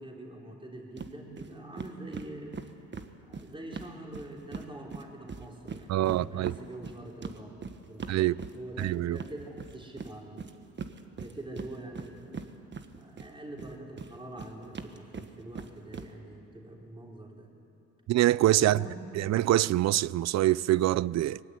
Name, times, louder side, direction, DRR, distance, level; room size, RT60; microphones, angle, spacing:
voice 1, 0.0-2.6 3.2-7.5 7.9-8.2 8.5-10.4 11.2-12.5 13.0-17.5 18.6-19.1, right 1 dB, 15° right, 3.7 m, -44 dB
sound 1, 1.0-1.1 1.4-1.5 1.8-4.7 4.9-13.3 13.6-16.1, right 5 dB, 35° right, 1.4 m, -41 dB
voice 2, 5.9-6.5 8.1-8.4 8.8-9.2 18.1-18.8 19.2-21.4, right 14 dB, 60° right, 0.5 m, -25 dB
21.5 x 15.5 x 9.9 m
cardioid pair, 90°, 30 cm